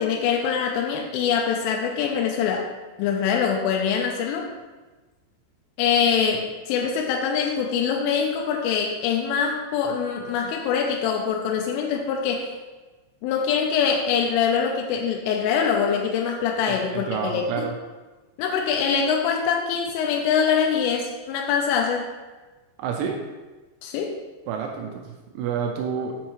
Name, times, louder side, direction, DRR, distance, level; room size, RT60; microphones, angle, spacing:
voice 1, 0.0-2.7 3.0-4.5 5.8-12.5 13.2-17.7 18.4-22.1 23.8-24.2, left 7 dB, 85° left, 1 dB, 3.1 m, -24 dB
voice 2, 16.7-17.7 22.8-23.2 24.5-26.2, right 6 dB, 85° right, 2 dB, 2.9 m, -29 dB
7.3 x 5.4 x 3.0 m, 1.2 s
omnidirectional pair, 5.7 m